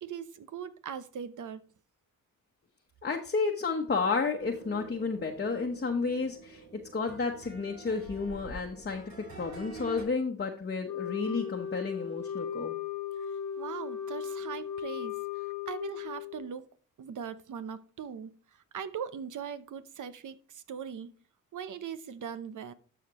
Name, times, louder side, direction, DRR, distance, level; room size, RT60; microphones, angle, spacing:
voice 1, 0.0-1.6 13.6-16.7 17.0-21.1 21.5-22.7, right 7 dB, 65° right, 0.8 m, -40 dB
voice 2, 3.0-6.6 6.9-12.8, left 4 dB, 30° left, 1.1 m, -31 dB
sound 1, 4.4-10.0, right 3 dB, 85° right, 3.9 m, -47 dB
Wind instrument woodwind instrument, 10.9-16.5, left 8 dB, 60° left, 0.9 m, -37 dB
12.5 x 5.0 x 3.0 m
cardioid pair, 60°, 33 cm